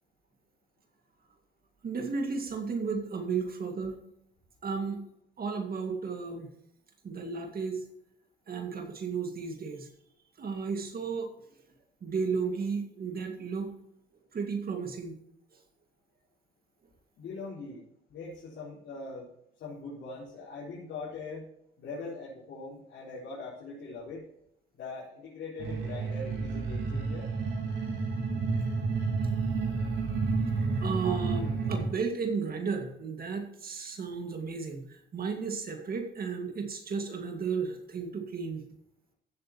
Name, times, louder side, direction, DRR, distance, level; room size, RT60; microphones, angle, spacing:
voice 1, 1.8-4.0 4.6-5.0 5.4-6.5 7.0-7.8 8.5-9.9 10.4-11.3 12.0-13.8 14.3-15.1 30.8-38.6, right 5 dB, 50° right, 4 dB, 2.0 m, -33 dB
voice 2, 17.2-17.8 18.1-19.3 19.6-21.5 21.8-24.2 24.8-27.3, left 3 dB, 70° left, -7 dB, 4.3 m, -41 dB
sound 1, 25.6-31.9, right 4 dB, 85° right, 3.7 m, -30 dB
15.5 x 7.5 x 3.0 m, 0.75 s
cardioid pair, 90°, 20 cm